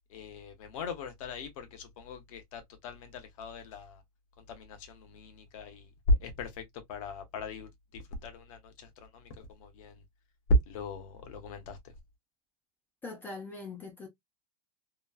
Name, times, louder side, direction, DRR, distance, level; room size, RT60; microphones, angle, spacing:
voice 1, 0.1-4.0 4.4-10.0 10.7-11.9, left 2 dB, 55° left, 0.9 m, -38 dB
voice 2, 13.0-14.1, left 3 dB, 10° left, 0.4 m, -41 dB
3.0 x 2.2 x 2.3 m
supercardioid pair, 170°, 20 cm